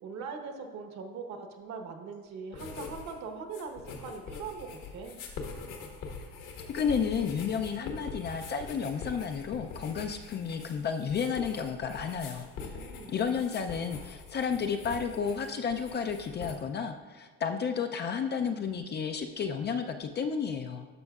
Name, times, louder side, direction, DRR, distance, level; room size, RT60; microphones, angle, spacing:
voice 1, 0.0-5.2 12.7-13.2, right 5 dB, 55° right, 5 dB, 1.1 m, -41 dB
sound 1, 2.5-3.2 3.4-16.5, left 4 dB, 70° left, 1.5 m, -44 dB
voice 2, 6.7-20.9, left 6 dB, 30° left, 6 dB, 0.4 m, -32 dB
12.0 x 6.1 x 2.4 m, 1.5 s
cardioid pair, 115°, 34 cm